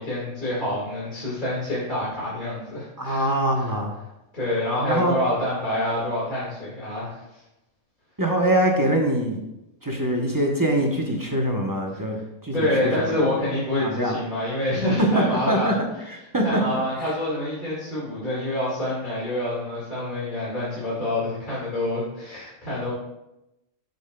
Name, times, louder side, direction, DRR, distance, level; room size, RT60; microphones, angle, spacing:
voice 1, 0.0-3.7 4.3-7.2 12.5-15.8 16.4-22.9, left 1 dB, 35° left, -8 dB, 2.0 m, -27 dB
voice 2, 3.0-3.9 4.9-5.2 8.2-9.4 9.8-12.9 13.8-14.2 15.1-16.8, right 1 dB, 20° right, 0 dB, 0.6 m, -23 dB
11.5 x 5.3 x 2.2 m, 0.93 s
omnidirectional pair, 1.5 m